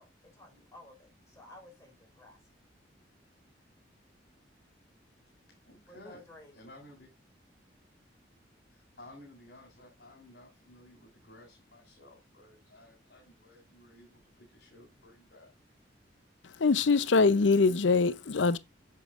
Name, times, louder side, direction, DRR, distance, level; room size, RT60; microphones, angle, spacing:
voice 1, 0.0-2.6 5.9-6.5, left 1 dB, 15° left, 5.6 m, -54 dB
voice 2, 5.6-6.2 6.6-7.1 8.7-14.2 14.5-15.5 16.7-17.1, left 1 dB, 70° left, 3.4 m, -54 dB
voice 3, 16.6-18.6, left 4 dB, 90° left, 0.6 m, -23 dB
8.3 x 6.9 x 2.5 m
head